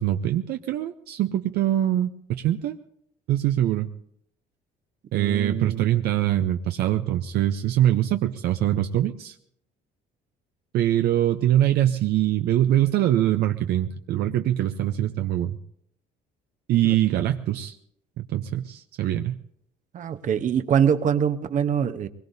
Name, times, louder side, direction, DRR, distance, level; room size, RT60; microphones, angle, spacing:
voice 1, 0.0-2.8 3.3-3.9 5.1-9.4 10.7-15.6 16.7-17.8 18.2-19.4, right 12 dB, 70° right, 7 dB, 0.6 m, -23 dB
voice 2, 5.1-5.9 16.8-16.9 19.9-22.1, right 8 dB, 50° right, 9 dB, 0.9 m, -24 dB
22.5 x 21.0 x 2.7 m, 0.70 s
cardioid pair, 110°, 17 cm